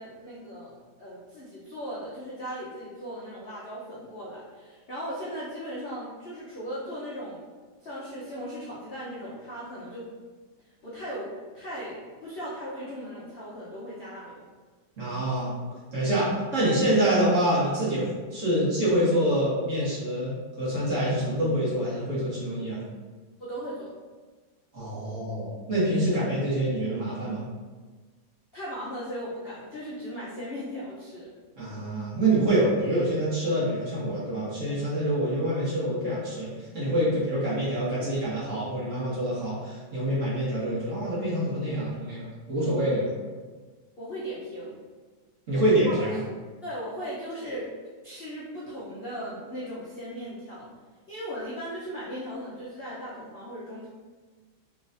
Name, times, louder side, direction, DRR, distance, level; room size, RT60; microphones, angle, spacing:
voice 1, 0.0-7.4 7.8-10.1 10.8-14.4 23.4-23.9 28.5-31.3 44.0-44.8 45.9-46.1 46.6-47.7 48.0-50.7 51.1-53.9, equal, 70° left, -8 dB, 0.5 m, -37 dB
voice 2, 15.0-15.5 15.9-20.3 20.6-22.8 24.7-27.4 31.6-36.5 36.7-43.1 45.5-46.2 47.4-47.5, right 1 dB, 40° right, -9 dB, 1.6 m, -26 dB
4.0 x 3.8 x 2.5 m, 1.4 s
omnidirectional pair, 2.2 m